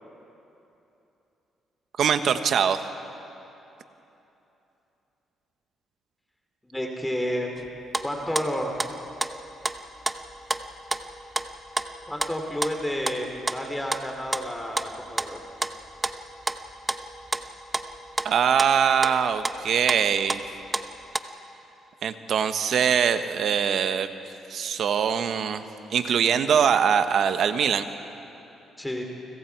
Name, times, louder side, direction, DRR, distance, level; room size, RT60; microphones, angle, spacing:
voice 1, 2.0-2.8 18.2-20.4 22.0-24.1 24.5-25.6 25.9-27.9, right 7 dB, 65° right, 9 dB, 1.2 m, -22 dB
voice 2, 6.6-7.7 8.0-8.7 12.1-15.4 28.8-29.0, equal, 10° left, 2 dB, 2.8 m, -30 dB
sound 1, 7.6-7.7 7.9-20.5 20.7-21.2, right 2 dB, 20° right, 1.0 m, -30 dB
29.5 x 25.5 x 4.7 m, 3.0 s
cardioid pair, 90°, 0 cm